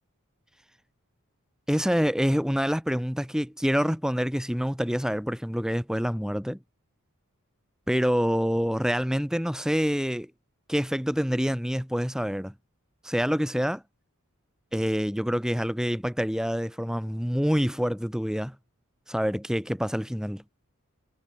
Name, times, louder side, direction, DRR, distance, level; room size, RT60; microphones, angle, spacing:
voice 1, 1.7-6.6 7.9-10.3 10.7-12.5 13.0-13.8 14.7-18.5 19.1-20.4, equal, 5° right, 3.2 m, -26 dB
head